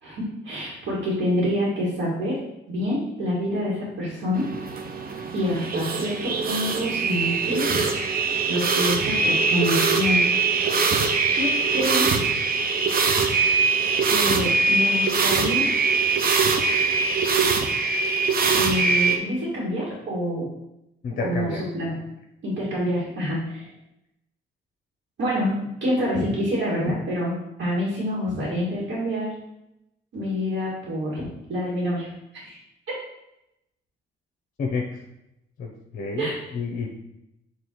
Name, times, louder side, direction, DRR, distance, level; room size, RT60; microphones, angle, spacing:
voice 1, 0.0-2.4 2.7-4.4 5.3-7.8 8.5-10.2 10.6-12.1 14.1-15.7 18.5-20.5 21.2-22.0 22.4-23.7 25.2-29.3 30.1-32.6 36.2-36.3, equal, 70° right, -6 dB, 2.2 m, -27 dB
sound 1, 4.3-19.2, right 4 dB, 50° right, 0.7 m, -22 dB
voice 2, 21.0-21.6 34.6-35.0 35.6-36.9, left 4 dB, 45° left, 0 dB, 0.9 m, -30 dB
6.2 x 3.3 x 4.6 m, 0.87 s
cardioid pair, 90°, 20 cm